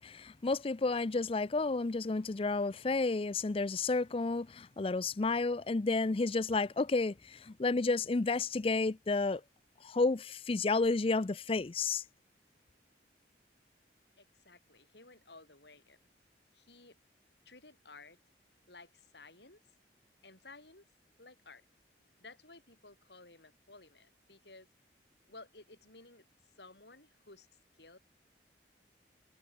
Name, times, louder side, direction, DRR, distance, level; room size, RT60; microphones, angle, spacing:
voice 1, 0.0-9.4 9.8-12.0, left 3 dB, 30° left, 0.5 m, -31 dB
voice 2, 14.2-16.1 16.5-17.0 17.5-18.2 18.7-19.8 20.2-20.9 21.2-21.7 22.2-24.7 25.3-28.0, left 3 dB, 70° left, 7.2 m, -56 dB
head